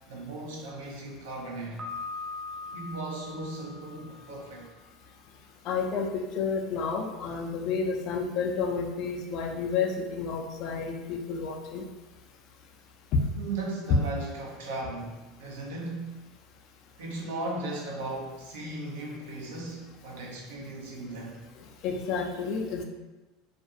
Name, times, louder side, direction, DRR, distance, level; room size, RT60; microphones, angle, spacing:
voice 1, 0.1-1.8 2.7-4.7 13.4-16.2 17.0-21.4, right 2 dB, 80° right, -2 dB, 0.6 m, -37 dB
Piano, 1.8-4.7, left 3 dB, 15° right, 0.5 m, -40 dB
voice 2, 5.7-11.8 13.1-13.2 21.8-22.8, left 5 dB, 60° left, 3 dB, 0.4 m, -30 dB
2.4 x 2.3 x 2.6 m, 1.1 s
hypercardioid pair, 85°, 0 cm